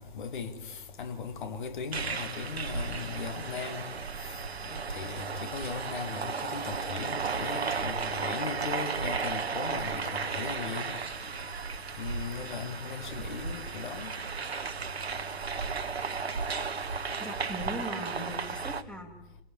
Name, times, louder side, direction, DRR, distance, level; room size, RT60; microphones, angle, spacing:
voice 1, 0.2-0.5 1.0-3.8 5.0-10.9 12.0-14.1, left 5 dB, 50° left, 2.2 m, -37 dB
sound 1, 1.9-18.8, right 5 dB, 80° right, 1.4 m, -34 dB
voice 2, 17.2-19.4, equal, 5° left, 2.3 m, -40 dB
27.5 x 18.0 x 7.1 m
figure-of-eight pair, 135°, 31 cm